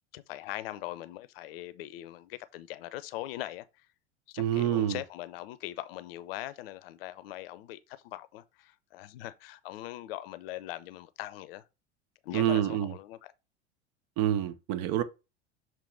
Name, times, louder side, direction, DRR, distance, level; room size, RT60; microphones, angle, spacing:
voice 1, 0.1-3.9 4.3-11.6 12.2-13.2, left 15 dB, 60° left, 0.6 m, -41 dB
voice 2, 4.4-5.0 12.3-12.9 14.2-15.0, right 11 dB, 50° right, 0.8 m, -27 dB
6.7 x 3.1 x 4.6 m
figure-of-eight pair, 75°, 34 cm